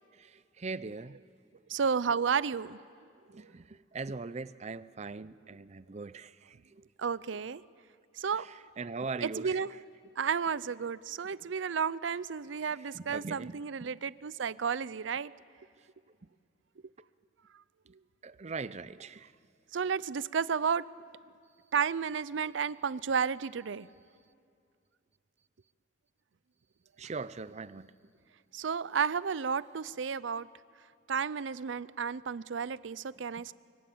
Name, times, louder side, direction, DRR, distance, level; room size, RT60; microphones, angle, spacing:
voice 1, 0.2-1.2 3.3-6.8 8.8-9.6 12.9-13.9 18.2-19.3 27.0-27.9, right 4 dB, 35° right, 0.5 m, -41 dB
voice 2, 1.7-2.8 7.0-7.6 8.2-8.5 9.2-9.7 10.2-15.3 19.7-20.9 21.7-23.9 28.5-30.5 31.1-33.5, right 6 dB, 85° right, 0.5 m, -32 dB
25.0 x 23.5 x 8.5 m
head